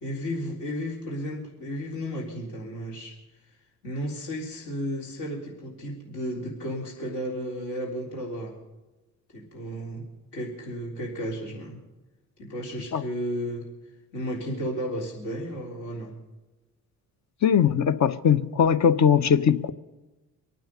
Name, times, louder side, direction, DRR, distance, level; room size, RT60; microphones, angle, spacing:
voice 1, 0.0-3.2 3.8-8.6 9.3-10.0 10.3-11.8 12.4-13.7 14.1-16.2, equal, 55° left, -2 dB, 3.8 m, -33 dB
voice 2, 17.4-19.7, left 7 dB, 35° left, 12 dB, 0.9 m, -20 dB
25.5 x 9.2 x 5.5 m, 1.1 s
figure-of-eight pair, 50°, 48 cm